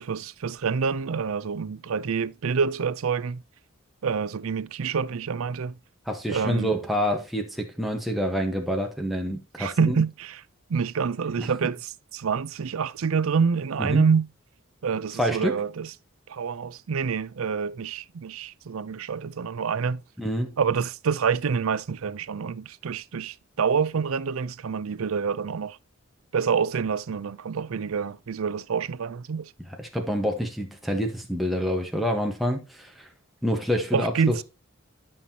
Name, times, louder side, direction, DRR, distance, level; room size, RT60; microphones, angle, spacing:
voice 1, 0.0-3.4 4.0-5.8 6.3-6.7 9.6-10.4 10.7-14.3 14.8-15.9 16.3-20.0 20.6-25.8 26.3-29.5 33.9-34.4, right 6 dB, 80° right, 0.5 m, -27 dB
voice 2, 6.1-10.0 11.4-11.5 13.8-14.0 15.2-15.6 20.2-20.5 29.8-33.1 33.4-34.4, equal, ahead, 1.2 m, -27 dB
11.5 x 5.6 x 2.8 m
head